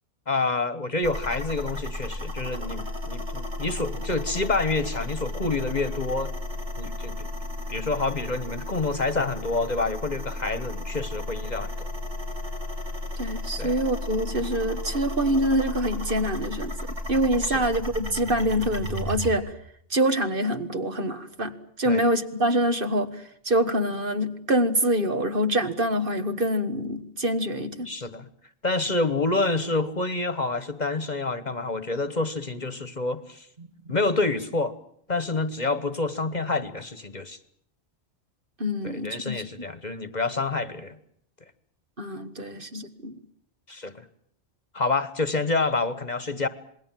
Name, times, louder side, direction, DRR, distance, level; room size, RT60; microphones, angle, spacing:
voice 1, 0.3-6.3 6.8-7.3 7.7-11.9 13.6-13.7 17.4-17.6 21.8-22.0 27.8-28.3 28.6-33.5 33.9-34.7 35.1-37.4 38.8-41.0 43.7-44.1 44.7-46.5, left 3 dB, 40° left, 14 dB, 1.4 m, -28 dB
sound 1, 1.0-19.3, left 1 dB, 75° right, 5.7 m, -34 dB
voice 2, 13.2-19.5 19.9-27.9 38.6-39.4 42.0-43.2, right 1 dB, 50° right, 8 dB, 1.9 m, -25 dB
27.5 x 20.5 x 7.5 m, 0.68 s
omnidirectional pair, 1.2 m